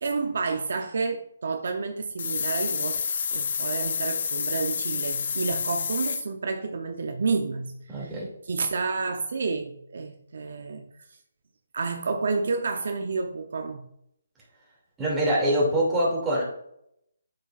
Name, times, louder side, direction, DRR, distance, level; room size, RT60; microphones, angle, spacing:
voice 1, 0.0-3.0 3.3-8.2 8.5-10.8 11.7-13.9, right 4 dB, 65° right, 4 dB, 0.8 m, -30 dB
sound 1, 2.2-6.2, left 6 dB, 55° left, 0.5 m, -29 dB
voice 2, 7.9-8.3 15.0-16.4, right 1 dB, 10° right, -6 dB, 2.7 m, -24 dB
8.4 x 6.5 x 2.5 m, 0.76 s
hypercardioid pair, 155°, 0 cm